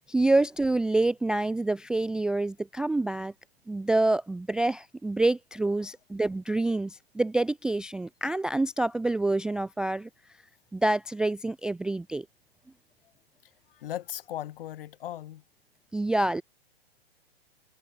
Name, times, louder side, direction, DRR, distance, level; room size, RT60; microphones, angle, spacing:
voice 1, 0.1-3.3 3.7-10.1 10.7-12.3 15.9-16.4, right 2 dB, 5° right, 0.4 m, -27 dB
voice 2, 13.7-15.4 16.2-16.3, left 12 dB, 60° left, 6.0 m, -38 dB
hypercardioid pair, 125°, 31 cm